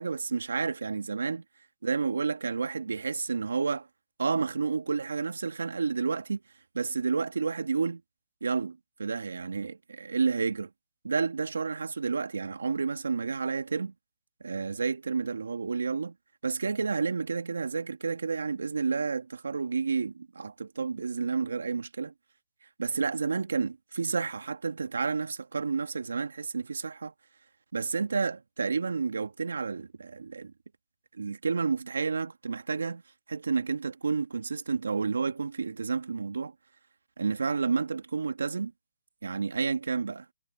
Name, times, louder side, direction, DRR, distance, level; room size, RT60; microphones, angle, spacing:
voice 1, 0.0-1.4 1.8-3.9 4.2-6.4 6.7-8.0 8.4-10.7 11.0-13.9 14.4-16.1 16.4-22.1 22.8-27.1 27.7-30.5 31.1-33.0 33.3-36.5 37.2-38.7 39.2-40.3, right 5 dB, 85° right, 2.3 m, -30 dB
hypercardioid pair, 160°, 0 cm